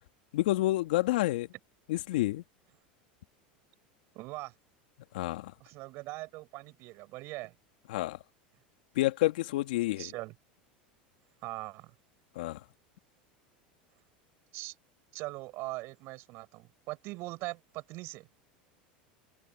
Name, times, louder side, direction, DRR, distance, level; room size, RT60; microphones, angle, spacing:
voice 1, 0.3-1.5 1.9-2.4 5.1-5.5 7.9-8.2 9.0-10.1 12.4-12.6, left 17 dB, 75° left, 2.4 m, -29 dB
voice 2, 4.1-4.5 5.6-7.6 10.0-10.3 11.4-11.9 14.5-14.7 15.1-18.3, right 21 dB, 55° right, 7.7 m, -41 dB
hypercardioid pair, 95°, 5 cm